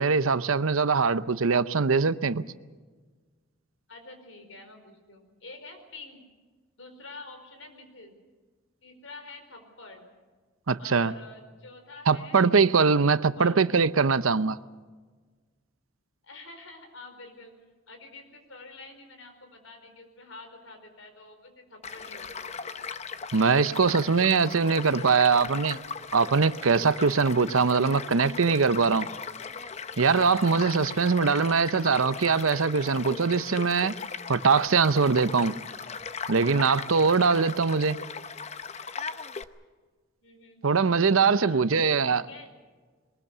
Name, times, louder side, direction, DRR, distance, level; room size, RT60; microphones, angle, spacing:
voice 1, 0.0-2.4 10.7-11.1 12.1-14.6 23.3-25.8 26.1-29.1 30.0-33.9 34.3-35.5 36.3-38.0 40.6-42.2, right 5 dB, 90° right, 0.8 m, -22 dB
voice 2, 3.9-6.2 6.8-8.1 8.8-10.1 10.8-12.5 12.9-13.8 16.2-17.5 17.9-22.7 23.8-24.5 24.8-25.8 40.2-40.9 41.3-42.5, left 2 dB, 75° left, 4.5 m, -48 dB
Child speech kid speaking / Stream / Car passing by, 21.8-39.4, left 5 dB, 35° left, 0.7 m, -38 dB
22.0 x 21.0 x 6.8 m
head